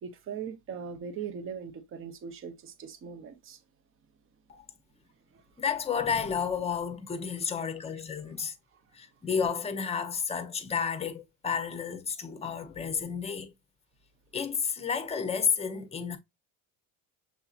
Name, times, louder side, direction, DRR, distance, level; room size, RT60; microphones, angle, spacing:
voice 1, 0.0-3.6 5.3-5.4 8.4-8.5 8.7-8.8, right 7 dB, 35° right, 0.8 m, -40 dB
voice 2, 5.6-8.6 8.9-13.5 14.3-16.2, left 6 dB, 15° left, 0.7 m, -31 dB
6.9 x 2.7 x 2.4 m
cardioid pair, 145°, 36 cm